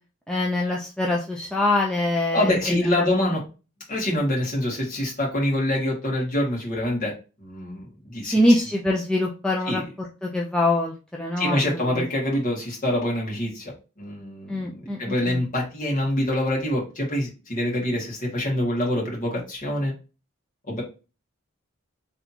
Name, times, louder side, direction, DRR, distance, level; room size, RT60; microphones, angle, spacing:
voice 1, 0.3-3.1 8.3-12.0 14.5-15.4, left 1 dB, 5° left, -2 dB, 0.5 m, -24 dB
voice 2, 2.3-3.4 3.9-7.1 7.4-8.4 9.7-9.8 11.4-19.9 20.7-20.8, left 1 dB, 35° left, -3 dB, 1.9 m, -25 dB
4.1 x 3.4 x 2.8 m, 0.31 s
head